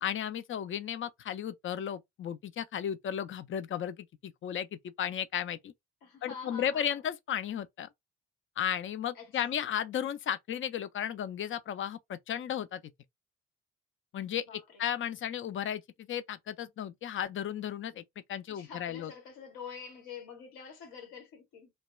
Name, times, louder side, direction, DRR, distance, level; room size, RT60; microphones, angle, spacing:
voice 1, 0.0-5.7 6.2-7.9 8.6-12.8 14.1-18.0 18.3-19.1, left 9 dB, 35° left, 0.4 m, -34 dB
voice 2, 6.0-7.0 9.1-9.6 14.5-14.9 18.5-21.7, left 6 dB, 70° left, 1.2 m, -47 dB
2.2 x 2.2 x 3.0 m
hypercardioid pair, 40°, 35 cm